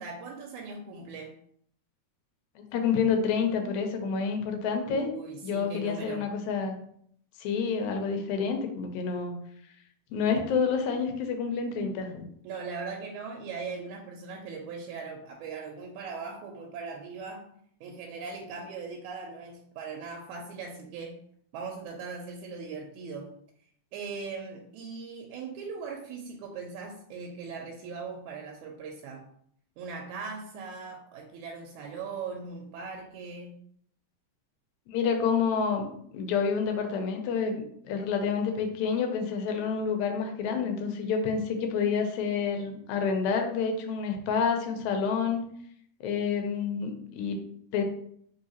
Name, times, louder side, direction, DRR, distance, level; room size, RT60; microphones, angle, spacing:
voice 1, 0.0-1.3 4.8-6.3 12.4-17.5 17.8-21.2 21.5-23.3 23.9-29.3 29.8-33.6, right 5 dB, 90° right, 2 dB, 2.0 m, -39 dB
voice 2, 2.6-5.1 5.4-6.8 7.4-9.3 10.1-12.3 34.9-45.4 46.0-47.4 47.7-47.8, left 6 dB, 85° left, 5 dB, 2.0 m, -28 dB
4.6 x 3.1 x 2.8 m, 0.66 s
omnidirectional pair, 3.4 m